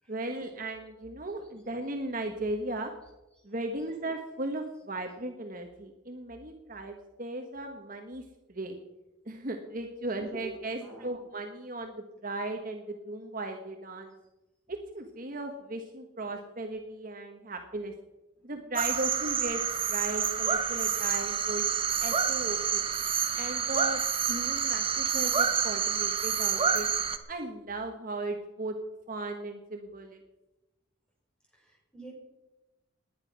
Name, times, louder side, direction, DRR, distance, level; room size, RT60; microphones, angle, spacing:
voice 1, 0.1-2.9 3.4-8.2 8.5-8.8 9.2-14.1 14.7-17.9 18.4-21.6 22.0-22.8 23.4-26.9 27.3-28.7 29.1-30.2, right 2 dB, 40° right, 4 dB, 1.4 m, -36 dB
voice 2, 10.7-11.2 31.5-32.1, right 2 dB, 5° left, -2 dB, 5.6 m, -48 dB
sound 1, 18.7-27.2, right 7 dB, 25° right, 1.0 m, -28 dB
19.5 x 10.0 x 6.1 m, 1.0 s
head